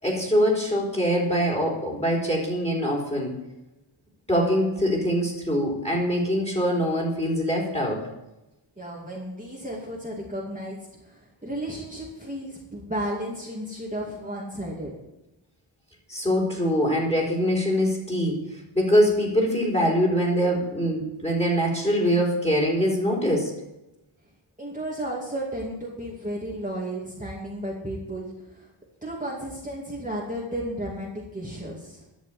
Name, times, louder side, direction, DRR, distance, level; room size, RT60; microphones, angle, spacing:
voice 1, 0.0-3.4 4.3-8.0 16.1-23.5, equal, 15° left, -2 dB, 3.9 m, -23 dB
voice 2, 8.8-14.9 24.6-28.7 29.0-32.1, right 1 dB, 15° right, -4 dB, 2.5 m, -33 dB
11.5 x 6.7 x 8.4 m, 0.95 s
wide cardioid pair, 85°, 49 cm